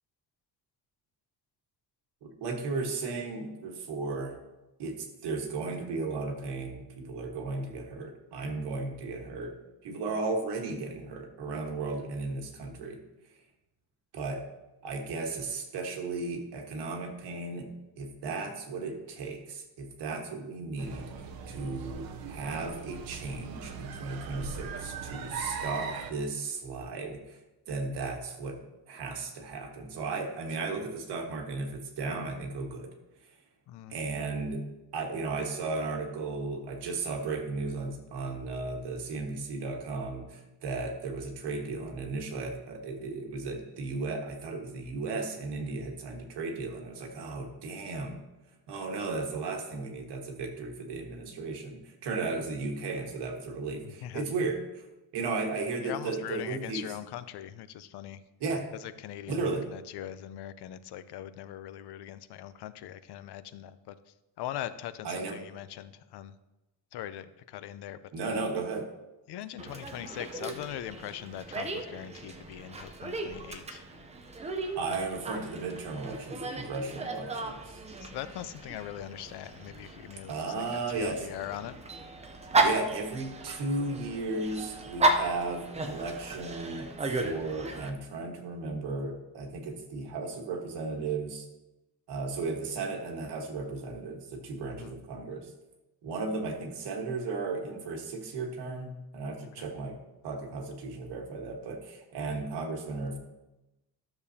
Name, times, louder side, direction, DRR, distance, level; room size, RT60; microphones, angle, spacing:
voice 1, 2.2-4.4 4.8-9.5 9.8-13.0 14.1-14.4 14.8-17.7 18.0-27.4 27.7-28.6 28.9-32.9 33.9-34.6 34.9-48.2 48.7-54.8 55.1-57.0 58.4-58.6 59.3-59.7 65.0-65.4 68.1-68.9 74.8-77.8 80.3-81.3 82.6-86.9 87.2-91.5 92.1-95.5 96.0-100.0 100.2-103.2, right 3 dB, 90° right, 3 dB, 1.5 m, -35 dB
sound 1, 20.8-26.1, right 5 dB, 65° right, 0.8 m, -39 dB
voice 2, 53.8-54.2 55.8-58.2 58.8-63.9 64.4-66.3 66.9-68.4 69.3-73.8 74.9-75.1 78.0-80.6 80.9-81.8 94.7-95.0 99.6-99.7, left 12 dB, 80° left, 13 dB, 0.6 m, -41 dB
Dog, 69.6-87.9, right 2 dB, 15° right, 0.5 m, -34 dB
12.5 x 6.8 x 2.8 m, 1.0 s
cardioid pair, 180°, 39 cm